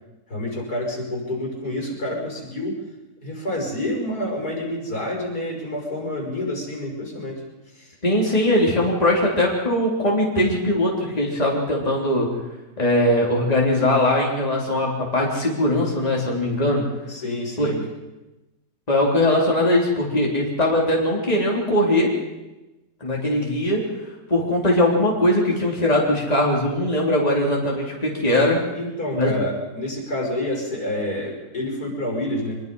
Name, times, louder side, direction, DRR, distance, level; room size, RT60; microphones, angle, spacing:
voice 1, 0.3-2.8 3.2-7.4 7.7-7.9 17.1-17.8 28.7-32.6, left 1 dB, 80° left, 0 dB, 6.5 m, -28 dB
voice 2, 8.0-12.3 12.8-16.8 17.6-17.7 18.9-22.1 23.0-23.8 24.3-28.6 29.1-29.4, left 1 dB, 25° left, -2 dB, 3.7 m, -20 dB
24.0 x 22.0 x 5.5 m, 1.1 s
omnidirectional pair, 1.6 m